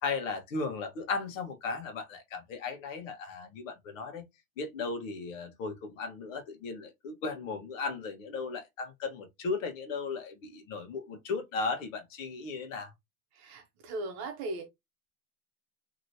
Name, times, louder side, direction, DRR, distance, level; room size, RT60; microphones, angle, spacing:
voice 1, 0.0-4.2 4.6-12.9, left 4 dB, 60° left, 1.2 m, -36 dB
voice 2, 13.3-14.7, right 2 dB, 35° right, 0.9 m, -38 dB
3.0 x 2.9 x 2.6 m
supercardioid pair, 155°, 43 cm